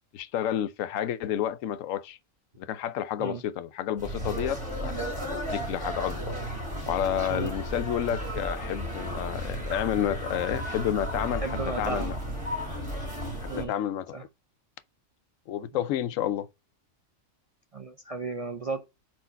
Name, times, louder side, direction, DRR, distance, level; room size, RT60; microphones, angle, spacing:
voice 1, 0.1-2.2 2.6-4.9 5.3-6.3 6.8-12.2 13.6-14.2 15.5-16.5, left 10 dB, 75° left, 0.9 m, -30 dB
sound 1, 4.0-13.6, equal, 20° right, 2.6 m, -34 dB
voice 2, 11.4-12.2 13.5-13.7 14.1-14.2 15.7-15.8 17.7-18.8, right 3 dB, 55° right, 0.4 m, -34 dB
4.6 x 4.4 x 5.4 m
omnidirectional pair, 1.4 m